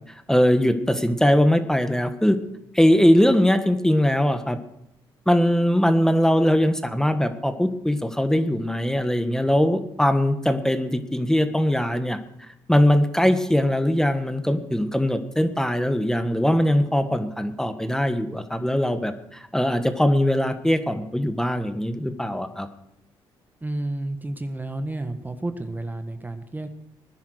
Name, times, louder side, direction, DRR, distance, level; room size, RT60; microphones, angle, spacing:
voice 1, 0.3-2.4 2.7-4.6 5.3-12.2 12.7-22.7, equal, 5° left, 9 dB, 1.6 m, -21 dB
voice 2, 23.6-26.7, right 2 dB, 15° right, 8 dB, 1.5 m, -31 dB
19.5 x 10.5 x 6.6 m, 0.82 s
supercardioid pair, 65°, 11 cm